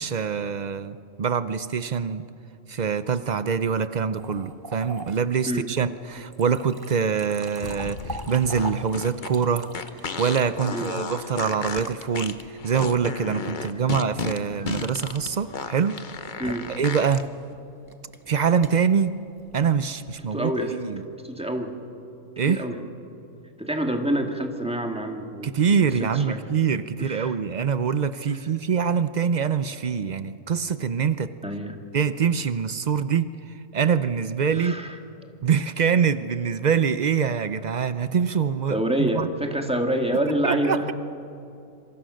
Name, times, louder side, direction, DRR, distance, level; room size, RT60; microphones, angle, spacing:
voice 1, 0.0-2.2 2.7-9.7 10.2-16.0 16.7-17.3 18.3-19.2 19.5-21.0 22.4-22.6 25.4-31.3 31.9-34.8 35.4-39.3 40.3-40.9, right 6 dB, 90° right, 12 dB, 0.3 m, -24 dB
sound 1, 4.2-12.8 14.6-20.3, right 2 dB, 20° right, 0.6 m, -43 dB
sound 2, 7.6-17.2, left 5 dB, 35° left, 0.9 m, -34 dB
voice 2, 16.4-16.7 20.2-21.7 22.5-22.8 23.6-26.4 27.0-27.3 31.4-31.8 34.5-35.0 38.7-40.9, right 1 dB, 5° right, 3 dB, 1.9 m, -27 dB
26.5 x 24.5 x 6.4 m, 2.7 s
omnidirectional pair, 1.6 m